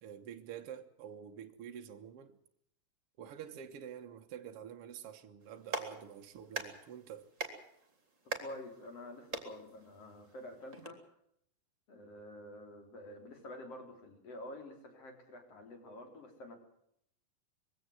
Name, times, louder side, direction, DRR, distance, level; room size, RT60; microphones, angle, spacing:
voice 1, 0.0-2.4 3.2-7.3, right 9 dB, 60° right, 1.6 m, -48 dB
Clapping, 5.4-10.9, right 4 dB, 20° right, 2.8 m, -44 dB
voice 2, 8.4-11.0 11.9-16.6, left 1 dB, 40° left, 4.7 m, -48 dB
22.0 x 16.5 x 7.8 m
omnidirectional pair, 4.2 m